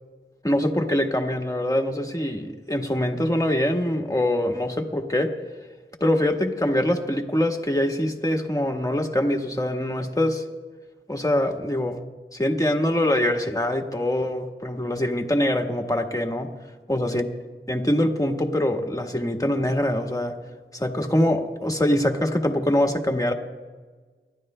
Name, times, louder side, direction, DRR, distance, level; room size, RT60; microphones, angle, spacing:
voice 1, 0.4-5.3 6.0-10.4 11.1-12.0 12.3-16.5 16.9-17.3 17.7-20.4 20.7-23.3, left 1 dB, 15° left, 2 dB, 1.4 m, -24 dB
30.0 x 12.5 x 2.2 m, 1.4 s
wide cardioid pair, 40°, 21 cm